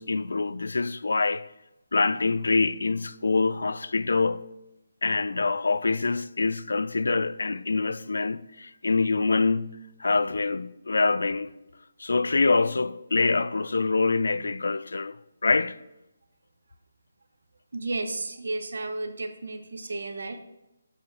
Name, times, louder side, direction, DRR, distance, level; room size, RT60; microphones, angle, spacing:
voice 1, 0.0-1.4 1.9-4.4 5.0-11.5 12.0-15.2 15.4-15.8, left 3 dB, 80° left, 0.4 m, -25 dB
voice 2, 17.7-20.4, right 2 dB, 75° right, 1.0 m, -33 dB
7.3 x 4.9 x 5.8 m
hypercardioid pair, 160°, 0 cm